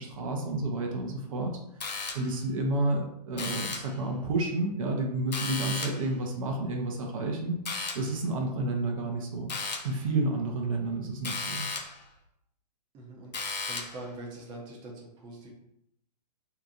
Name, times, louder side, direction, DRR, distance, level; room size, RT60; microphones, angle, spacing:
voice 1, 0.0-1.5 1.8-7.6 7.9-9.5 9.8-11.7, right 2 dB, 55° right, 1 dB, 0.7 m, -30 dB
sound 1, 1.8-2.5 3.4-4.0 5.3-6.1 7.7-8.2 9.5-10.0 11.2-12.0 13.3-14.1, left 4 dB, 85° left, 0.6 m, -35 dB
voice 2, 12.9-15.5, right 2 dB, 20° right, -1 dB, 0.7 m, -44 dB
2.8 x 2.4 x 3.7 m, 0.77 s
hypercardioid pair, 125°, 21 cm